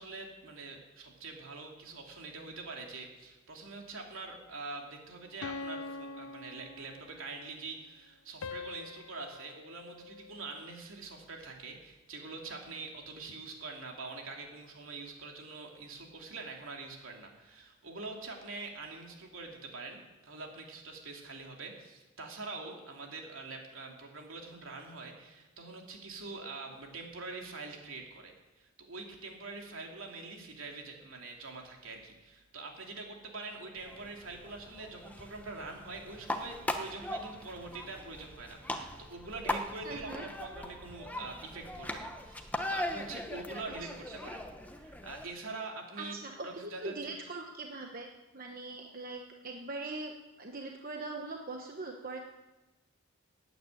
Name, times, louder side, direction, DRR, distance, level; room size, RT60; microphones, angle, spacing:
voice 1, 0.0-44.5 44.7-46.1 46.4-46.9, right 3 dB, 70° right, 1 dB, 3.0 m, -44 dB
sound 1, 5.4-7.4 8.4-10.8, left 3 dB, 85° left, 0.6 m, -44 dB
sound 2, 33.8-45.3, left 1 dB, 5° left, 0.9 m, -40 dB
voice 2, 39.8-40.2 46.0-48.1 48.3-52.2, right 3 dB, 45° right, 2 dB, 1.1 m, -41 dB
15.0 x 9.3 x 9.2 m, 1.1 s
head